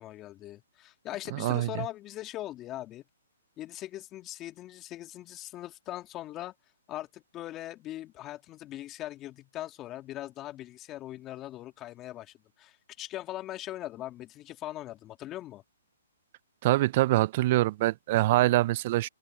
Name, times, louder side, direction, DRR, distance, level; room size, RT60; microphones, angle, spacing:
voice 1, 0.0-3.0 3.6-6.5 6.9-15.6, left 14 dB, 25° left, 2.1 m, -40 dB
voice 2, 1.3-1.7 16.6-19.1, right 17 dB, 40° right, 0.4 m, -24 dB
open air
hypercardioid pair, 140°, 0 cm